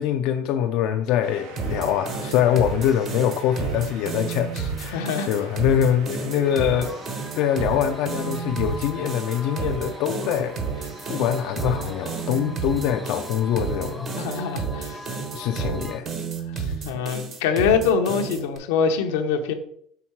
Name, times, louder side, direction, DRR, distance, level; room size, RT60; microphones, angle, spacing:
voice 1, 0.0-6.9 7.3-14.5 15.3-16.1 16.6-16.8, left 10 dB, 65° left, 0.4 m, -24 dB
Shout / Cheering / Applause, 1.2-14.0, right 5 dB, 80° right, 1.1 m, -47 dB
sound 1, 1.6-18.6, right 5 dB, 45° right, 1.2 m, -31 dB
sound 2, 2.3-16.0, left 1 dB, 5° left, 0.5 m, -42 dB
voice 2, 4.9-5.3 14.2-15.0 16.8-19.5, left 6 dB, 90° left, 0.8 m, -23 dB
5.9 x 3.6 x 4.6 m
supercardioid pair, 115°, 0 cm